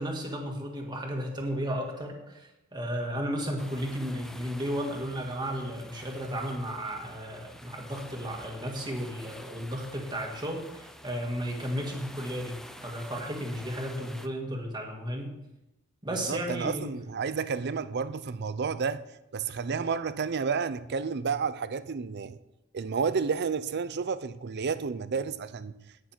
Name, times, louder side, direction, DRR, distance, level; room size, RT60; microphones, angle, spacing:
voice 1, 0.0-15.3 16.0-16.9, equal, 20° right, 1.9 m, -34 dB
sound 1, 3.6-14.3, equal, ahead, 0.6 m, -48 dB
voice 2, 16.1-19.0 19.3-22.4 22.7-25.7, right 5 dB, 50° right, 0.5 m, -31 dB
17.5 x 6.7 x 4.5 m
head